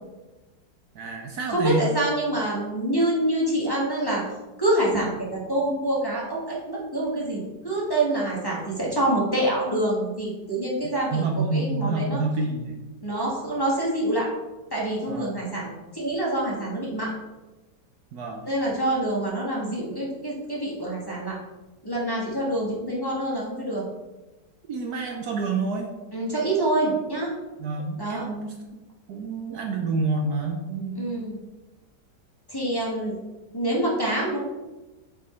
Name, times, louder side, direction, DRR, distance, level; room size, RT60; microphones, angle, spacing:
voice 1, 0.9-1.9 11.1-12.8 15.1-15.3 18.1-18.4 24.7-25.9 27.6-28.6 29.1-31.1, right 3 dB, 65° right, 3 dB, 1.2 m, -28 dB
voice 2, 1.5-4.2 4.6-12.2 13.0-14.3 14.7-17.1 18.4-21.4 21.8-23.8 26.1-27.3 28.0-28.2 31.0-31.4 32.5-33.1 33.5-34.4, right 1 dB, 15° left, -6 dB, 1.5 m, -26 dB
7.2 x 4.6 x 4.4 m, 1.1 s
omnidirectional pair, 1.9 m